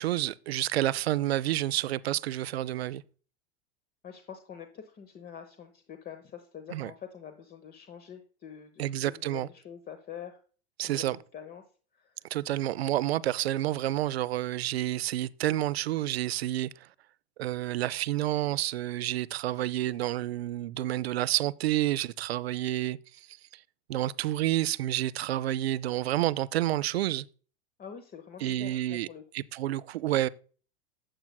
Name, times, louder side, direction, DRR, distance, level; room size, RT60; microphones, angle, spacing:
voice 1, 0.0-3.0 6.7-6.9 8.8-9.5 10.8-11.2 12.3-16.7 17.4-23.0 23.9-27.3 28.4-29.1 29.3-30.3, right 14 dB, 70° right, 0.5 m, -29 dB
voice 2, 4.0-10.4 10.8-11.6 12.0-12.3 27.8-29.4, left 8 dB, 30° left, 1.0 m, -46 dB
12.0 x 8.0 x 2.2 m
figure-of-eight pair, 85°, 33 cm